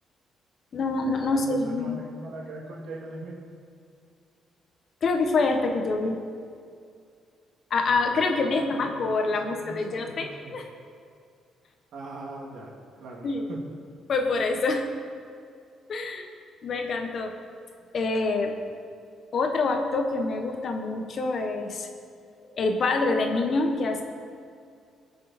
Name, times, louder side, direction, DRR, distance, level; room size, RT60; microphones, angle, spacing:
voice 1, 0.7-2.0 5.0-6.2 7.7-10.6 13.2-13.5 14.1-14.9 15.9-16.3 16.6-17.3 17.9-18.6 19.3-21.9 22.4-24.0, left 3 dB, 55° left, 4 dB, 1.4 m, -26 dB
voice 2, 1.2-3.4 7.8-10.5 11.9-12.7 13.0-13.6, right 2 dB, 75° right, -2 dB, 2.5 m, -41 dB
20.0 x 6.7 x 4.4 m, 2.3 s
cardioid pair, 90°, 0 cm